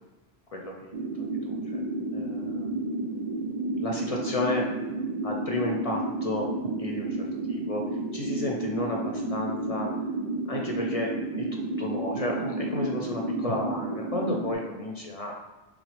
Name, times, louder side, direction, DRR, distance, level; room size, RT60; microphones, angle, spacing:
voice 1, 0.5-1.8 2.1-2.8 3.7-4.7 5.2-6.5 6.8-7.8 8.1-9.9 10.5-11.1 11.4-15.3, left 2 dB, 55° left, 0 dB, 0.4 m, -32 dB
sound 1, 0.9-14.5, right 2 dB, 50° right, 0.5 m, -31 dB
3.8 x 3.1 x 3.2 m, 1.1 s
omnidirectional pair, 1.1 m